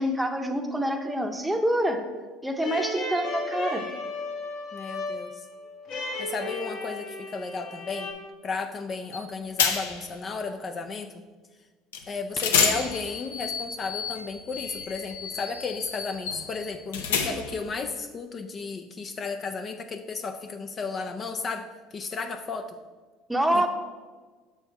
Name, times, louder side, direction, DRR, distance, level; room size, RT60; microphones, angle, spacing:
voice 1, 0.0-2.0 2.4-3.8 23.3-23.7, equal, 5° right, 5 dB, 0.8 m, -26 dB
sound 1, 2.6-8.1, left 2 dB, 65° left, 2.0 m, -35 dB
voice 2, 4.7-5.5 6.2-8.1 8.4-11.2 12.1-22.8 23.5-23.7, left 4 dB, 35° left, 6 dB, 0.5 m, -34 dB
sound 2, 9.1-9.3 9.6-10.1 11.9-12.0 12.4-17.7, left 6 dB, 85° left, 0.7 m, -29 dB
6.7 x 4.5 x 4.6 m, 1.4 s
hypercardioid pair, 70°, 0 cm